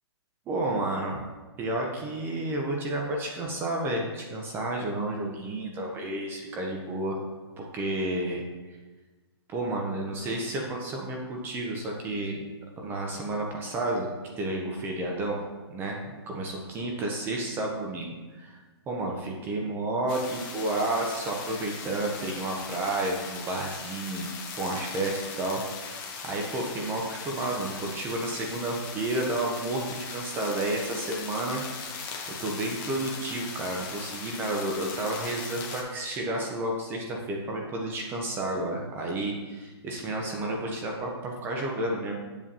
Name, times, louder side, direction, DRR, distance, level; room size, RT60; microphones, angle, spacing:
voice 1, 0.5-1.2 1.6-7.2 7.6-8.4 9.5-12.4 12.8-14.1 14.4-15.4 15.7-18.6 18.9-31.6 32.4-42.1, right 2 dB, 15° right, 0 dB, 0.7 m, -31 dB
sound 1, 20.1-35.8, left 5 dB, 25° left, 1.1 m, -39 dB
7.6 x 7.0 x 2.8 m, 1.3 s
hypercardioid pair, 150°, 14 cm